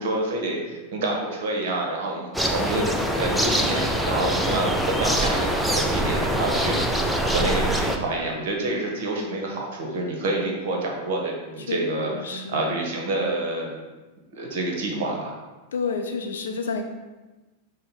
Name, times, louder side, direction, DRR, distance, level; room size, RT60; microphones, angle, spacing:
voice 1, 0.0-13.8 14.3-15.3, right 2 dB, 55° right, 0 dB, 1.0 m, -28 dB
sound 1, 2.3-8.0, right 1 dB, ahead, 0.4 m, -24 dB
voice 2, 12.1-12.6 15.7-16.8, left 4 dB, 65° left, 4 dB, 0.5 m, -29 dB
5.0 x 2.2 x 4.3 m, 1.1 s
figure-of-eight pair, 90°, 0 cm